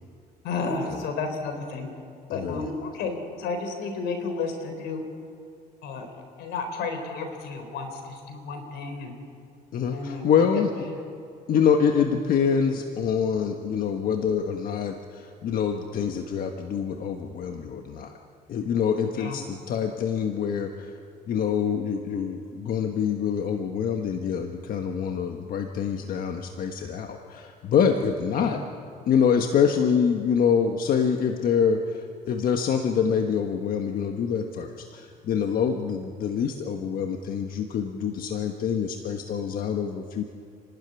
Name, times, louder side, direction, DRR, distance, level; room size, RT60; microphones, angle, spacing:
voice 1, 0.4-1.9 2.3-5.0 5.8-6.1 6.4-9.1 9.9-11.0 19.2-19.4 28.4-28.6, left 4 dB, 85° left, 5 dB, 4.2 m, -32 dB
voice 2, 2.3-2.7 9.7-10.7 11.5-18.1 18.5-21.0 21.3-28.6 29.1-40.2, left 7 dB, 60° left, 4 dB, 1.4 m, -25 dB
29.5 x 12.5 x 9.8 m, 2.4 s
cardioid pair, 110°, 17 cm